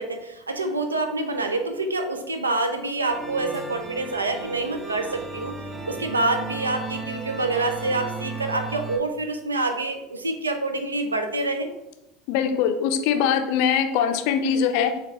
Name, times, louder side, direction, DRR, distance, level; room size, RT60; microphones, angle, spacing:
voice 1, 0.0-5.5 5.9-11.7, right 2 dB, 85° right, 6 dB, 0.4 m, -27 dB
sound 1, 3.1-9.0, right 4 dB, 25° right, 0.7 m, -35 dB
voice 2, 12.3-15.0, left 7 dB, 60° left, 6 dB, 0.4 m, -22 dB
4.4 x 2.3 x 2.8 m, 0.92 s
figure-of-eight pair, 75°, 0 cm